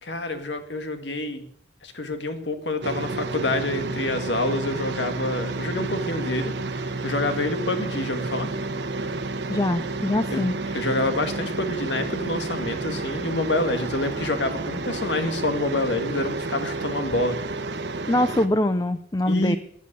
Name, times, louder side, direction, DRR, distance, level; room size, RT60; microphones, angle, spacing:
voice 1, 0.0-1.4 1.8-8.5 10.3-10.4 10.7-17.4 19.3-19.6, left 2 dB, 85° left, 8 dB, 1.9 m, -27 dB
sound 1, 2.8-18.5, right 3 dB, 75° right, 1.2 m, -30 dB
voice 2, 9.5-10.8 18.1-19.6, left 1 dB, 20° left, 11 dB, 0.6 m, -23 dB
15.5 x 9.7 x 6.8 m, 0.65 s
head